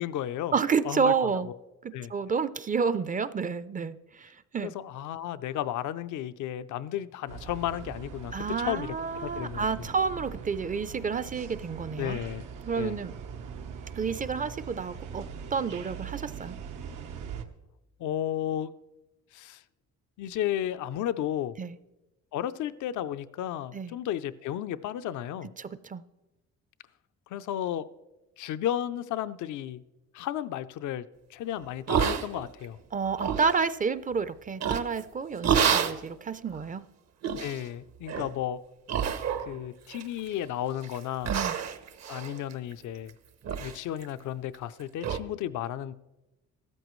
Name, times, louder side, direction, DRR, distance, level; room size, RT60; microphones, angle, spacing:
voice 1, 0.0-0.5 0.8-1.6 1.9-2.1 4.6-8.9 9.2-9.9 12.0-12.4 12.8-13.0 18.0-18.7 19.3-19.6 20.2-21.6 22.3-25.5 27.3-27.9 28.4-29.8 30.1-31.1 31.3-32.8 37.3-38.6 39.5-41.3 42.1-43.1 43.6-45.9, left 11 dB, 75° left, 12 dB, 0.5 m, -33 dB
voice 2, 0.5-1.5 1.8-4.7 8.3-12.2 12.6-13.1 14.0-15.2 15.5-16.5 21.6-21.7 23.7-23.9 25.6-26.0 32.9-36.8 41.3-41.6, right 5 dB, 25° right, 15 dB, 0.4 m, -30 dB
sound 1, 7.3-17.4, right 6 dB, 85° right, 1.0 m, -41 dB
sound 2, 31.9-32.7 33.0-33.6 34.6-35.0 35.4-36.0 36.6-36.7 37.2-37.6 38.1-38.3 38.9-39.6 39.9-40.4 40.8-41.0 41.2-43.1 43.4-43.8 44.0-44.1 44.5-44.6 45.0-45.2, right 8 dB, 60° right, 0.9 m, -28 dB
14.5 x 13.0 x 3.1 m, 1.0 s
cardioid pair, 90°, 30 cm